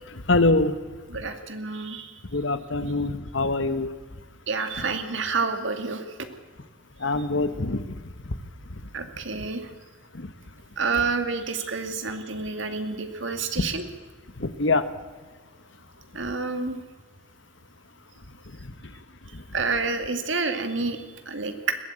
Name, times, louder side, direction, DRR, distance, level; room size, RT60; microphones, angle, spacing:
voice 1, 0.3-0.7 2.3-3.9 7.0-8.0 10.1-10.3 14.4-14.9, left 2 dB, 60° left, 12 dB, 1.3 m, -24 dB
voice 2, 1.1-2.2 4.5-6.2 7.2-7.3 8.9-9.7 10.8-13.8 16.1-16.8 19.5-21.7, right 4 dB, 65° right, 7 dB, 2.2 m, -29 dB
21.5 x 15.0 x 8.8 m, 1.4 s
head